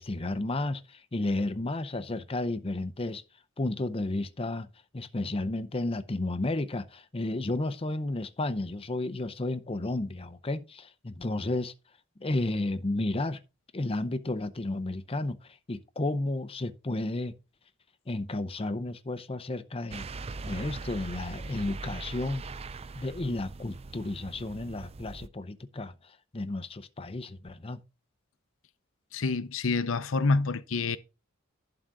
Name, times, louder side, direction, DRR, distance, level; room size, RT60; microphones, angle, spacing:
voice 1, 0.0-3.2 3.6-4.7 4.9-11.7 12.2-13.4 13.7-17.3 18.1-20.1 20.4-22.4 22.9-27.8, left 2 dB, 30° left, 0.7 m, -32 dB
sound 1, 19.9-25.3, right 3 dB, 30° right, 0.4 m, -41 dB
voice 2, 29.1-31.0, left 3 dB, 85° left, 0.7 m, -27 dB
11.5 x 3.9 x 6.1 m
head